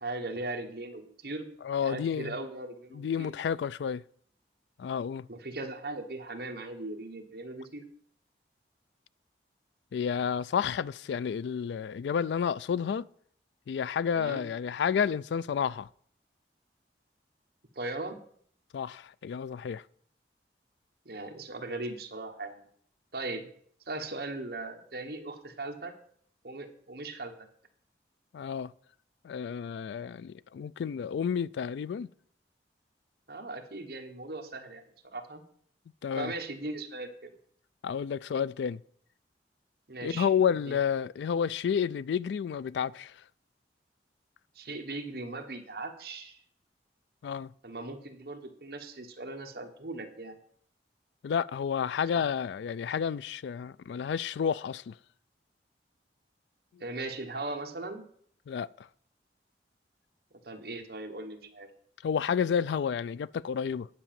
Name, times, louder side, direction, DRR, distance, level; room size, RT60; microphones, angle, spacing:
voice 1, 0.0-1.5 1.8-3.3 5.3-7.8 14.1-14.4 17.7-18.2 21.0-22.6 23.1-23.5 23.9-25.9 26.4-27.5 33.3-35.4 36.2-37.4 39.9-40.3 40.7-40.8 44.5-46.4 47.6-50.4 52.1-52.2 56.8-58.1 60.4-61.7, right 2 dB, 60° right, 1.2 m, -39 dB
voice 2, 1.6-2.4 2.9-4.0 4.8-5.3 9.9-13.1 13.7-15.9 18.7-19.8 28.3-28.7 29.2-32.1 36.0-36.3 37.8-38.8 40.0-43.2 47.2-47.5 51.2-54.9 58.5-58.9 62.0-63.9, left 7 dB, 75° left, 0.3 m, -30 dB
9.7 x 5.0 x 7.4 m
head